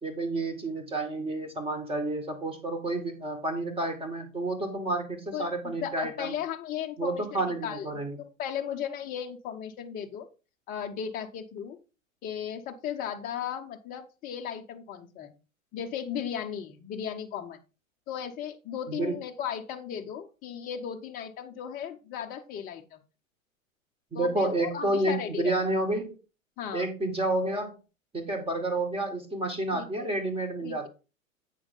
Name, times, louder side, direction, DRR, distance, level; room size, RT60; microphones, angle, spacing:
voice 1, 0.0-6.4 7.0-8.2 18.9-19.2 24.1-26.1 26.7-27.8 28.1-30.9, right 2 dB, 15° right, 5 dB, 2.0 m, -30 dB
voice 2, 5.3-10.3 10.7-11.8 12.2-15.3 15.7-17.6 18.1-23.0 24.1-25.5 26.6-26.9 29.7-30.1 30.6-30.9, left 8 dB, 20° left, 4 dB, 0.7 m, -36 dB
8.1 x 6.1 x 3.8 m, 0.31 s
figure-of-eight pair, 95°, 41 cm